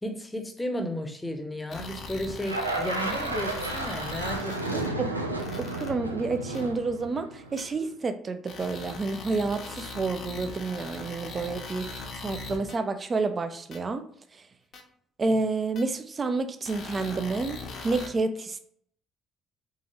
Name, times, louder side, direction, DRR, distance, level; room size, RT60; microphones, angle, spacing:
voice 1, 0.0-4.9, equal, 10° left, 0.9 m, -34 dB
sound 1, 1.7-4.9 5.4-5.9 6.5-6.6 7.6-7.7 8.5-12.8 13.7-13.8 14.7-14.8 15.8-15.9 16.6-18.1, left 3 dB, 45° left, 0.9 m, -40 dB
sound 2, 2.4-7.8, right 2 dB, 85° right, 0.4 m, -32 dB
voice 2, 4.7-5.2 5.6-11.9 12.1-14.0 14.3-14.4 15.2-18.6, right 3 dB, 30° right, 0.6 m, -29 dB
3.8 x 3.7 x 3.2 m
figure-of-eight pair, 50°, 0 cm